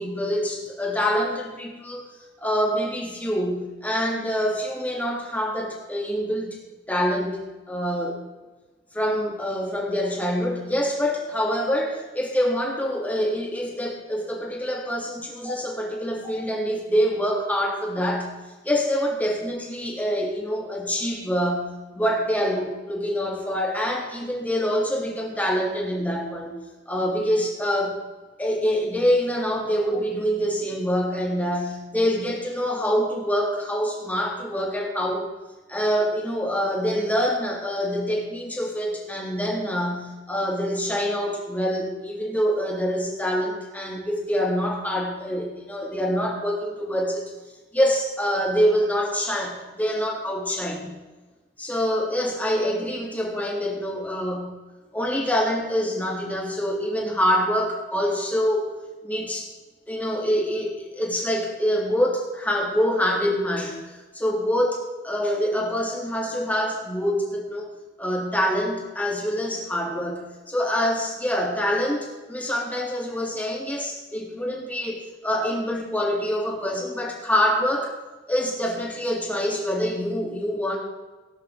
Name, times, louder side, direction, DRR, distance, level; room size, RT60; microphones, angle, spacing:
voice 1, 0.0-2.0 2.4-6.6 6.9-8.2 8.9-18.3 18.6-26.6 26.9-28.0 28.4-35.3 35.7-47.3 47.7-51.0 51.6-54.5 54.9-58.7 59.0-59.5 59.9-63.8 64.1-67.7 68.0-77.9 78.3-80.8, equal, 10° left, -2 dB, 3.4 m, -25 dB
19.5 x 10.5 x 3.9 m, 1.2 s
head